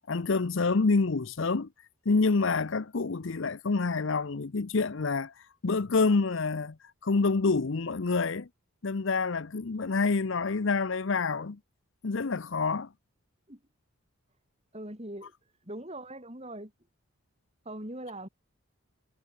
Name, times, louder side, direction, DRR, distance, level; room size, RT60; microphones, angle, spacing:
voice 1, 0.1-1.7 2.1-5.3 5.6-6.8 7.0-8.5 8.8-11.6 12.0-12.9, left 4 dB, 60° left, 0.7 m, -27 dB
voice 2, 14.7-15.3 15.6-16.7 17.6-18.3, right 1 dB, 30° right, 4.2 m, -41 dB
head